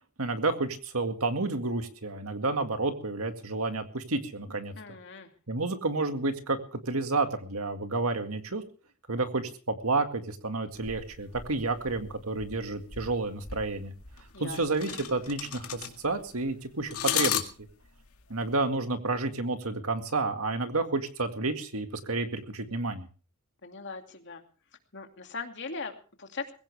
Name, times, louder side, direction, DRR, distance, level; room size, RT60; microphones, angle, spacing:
voice 1, 0.2-4.8 5.5-8.6 9.1-13.9 14.4-17.4 18.3-23.1, right 3 dB, 80° right, 7 dB, 2.0 m, -30 dB
voice 2, 4.8-5.3 14.3-14.6 23.6-24.4 24.9-26.5, left 4 dB, 55° left, 4 dB, 2.5 m, -39 dB
sound 1, 10.7-18.5, left 10 dB, 80° left, 2.1 m, -36 dB
21.0 x 16.5 x 3.5 m, 0.39 s
head